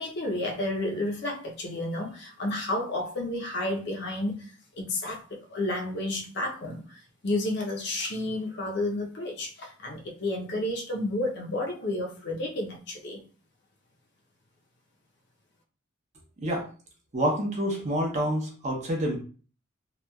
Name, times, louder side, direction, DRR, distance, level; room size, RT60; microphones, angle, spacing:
voice 1, 0.0-13.2, left 1 dB, 55° left, 0 dB, 0.6 m, -31 dB
voice 2, 17.1-19.2, equal, 35° right, 0 dB, 0.6 m, -27 dB
2.9 x 2.2 x 2.2 m, 0.39 s
head